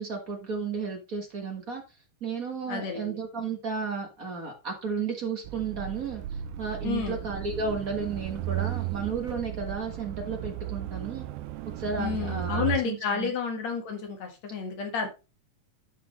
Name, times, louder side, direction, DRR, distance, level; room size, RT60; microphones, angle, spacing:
voice 1, 0.0-1.8 2.2-11.3 11.7-13.3, right 5 dB, 45° right, 2 dB, 1.2 m, -33 dB
voice 2, 2.7-3.2 6.8-7.2 12.0-15.1, left 6 dB, 60° left, 4 dB, 2.6 m, -31 dB
sound 1, 5.4-12.8, right 14 dB, 80° right, 2.1 m, -35 dB
10.5 x 5.9 x 3.1 m, 0.28 s
omnidirectional pair, 3.6 m